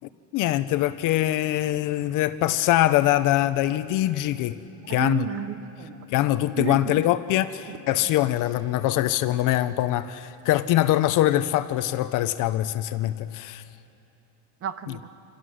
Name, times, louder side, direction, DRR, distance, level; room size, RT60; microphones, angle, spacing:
voice 1, 0.3-4.6 4.9-5.2 6.1-13.6, left 14 dB, 40° left, 0.5 m, -23 dB
voice 2, 4.9-6.1 6.6-7.1 7.7-7.8 14.6-15.1, right 9 dB, 30° right, 0.8 m, -32 dB
29.0 x 26.5 x 6.3 m
cardioid pair, 165°, 50 cm